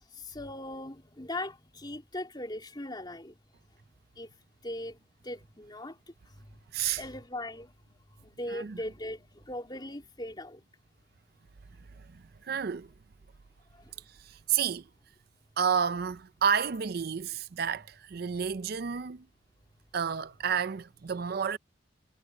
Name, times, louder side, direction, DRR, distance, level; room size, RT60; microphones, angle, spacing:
voice 1, 0.1-3.4 4.2-4.3 4.6-5.0 5.2-6.0 7.0-7.7 8.2-10.6 13.8-13.9, left 1 dB, 25° left, 3.7 m, -39 dB
voice 2, 12.0-12.9 14.1-14.8 15.6-19.2 19.9-21.6, right 7 dB, 55° right, 0.5 m, -30 dB
head